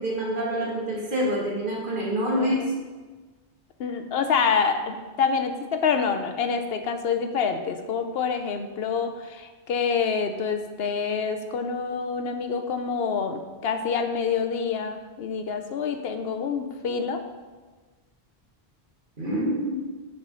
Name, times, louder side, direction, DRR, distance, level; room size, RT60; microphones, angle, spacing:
voice 1, 0.0-2.7 19.2-19.7, equal, 55° right, -4 dB, 1.9 m, -26 dB
voice 2, 2.3-2.7 3.8-17.2, left 6 dB, 75° left, 7 dB, 0.9 m, -27 dB
6.2 x 4.9 x 5.4 m, 1.3 s
omnidirectional pair, 1.0 m